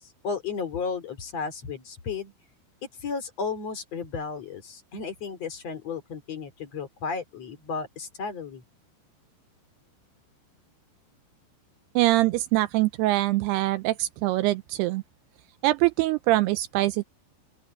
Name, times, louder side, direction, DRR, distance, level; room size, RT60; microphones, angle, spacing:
voice 1, 0.2-2.3 3.0-8.6, left 5 dB, 40° left, 3.6 m, -33 dB
voice 2, 12.0-15.0 15.6-17.0, right 17 dB, 85° right, 2.4 m, -23 dB
open air
omnidirectional pair, 5.3 m